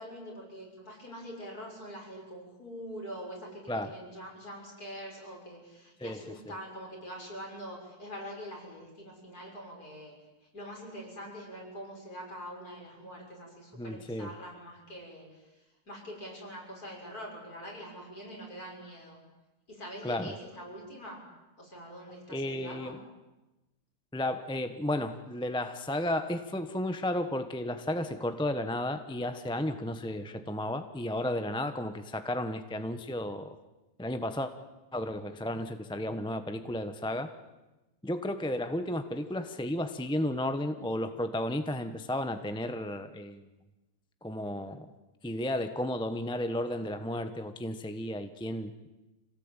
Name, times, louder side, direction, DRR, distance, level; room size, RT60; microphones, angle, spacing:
voice 1, 0.0-10.1 10.5-15.4 15.9-19.2 19.7-21.3 21.6-23.0, equal, 50° left, -1 dB, 7.1 m, -44 dB
voice 2, 6.0-6.4 13.7-14.3 20.0-20.3 22.3-23.0 24.1-33.6 34.0-34.5 34.9-37.3 38.0-43.5 44.2-44.9 45.2-48.9, left 1 dB, 5° left, 9 dB, 0.8 m, -33 dB
26.5 x 18.0 x 9.0 m, 1.1 s
omnidirectional pair, 2.0 m